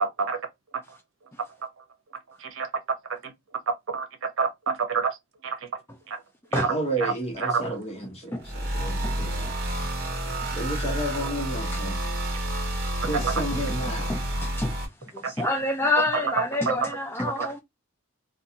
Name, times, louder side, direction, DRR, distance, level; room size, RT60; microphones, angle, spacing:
voice 1, 0.0-0.4 2.6-2.7 3.9-4.0 4.4-5.1 7.0-7.1 7.4-7.6 13.1-13.3 15.4-15.5 16.7-16.8 17.4-17.5, right 5 dB, 80° right, 0.7 m, -26 dB
voice 2, 6.7-9.5 10.5-12.0 13.1-14.1, right 1 dB, 30° left, 0.9 m, -31 dB
voice 3, 8.0-8.4 9.0-9.2 11.7-11.8 13.0-14.7 15.1-17.6, left 2 dB, 10° left, 0.3 m, -29 dB
sound 1, 8.4-14.9, right 1 dB, 55° right, 1.3 m, -29 dB
2.4 x 2.3 x 2.7 m
head